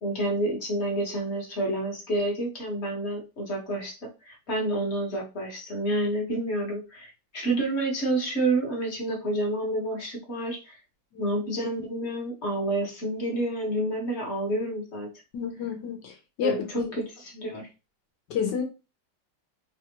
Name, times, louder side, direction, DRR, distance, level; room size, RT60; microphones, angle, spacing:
voice 1, 0.0-10.8 11.2-15.1 16.4-17.7, right 1 dB, 40° left, 1.2 m, -29 dB
voice 2, 15.3-16.9 18.3-18.6, left 7 dB, 70° left, 1.3 m, -30 dB
3.4 x 2.4 x 2.8 m
omnidirectional pair, 2.1 m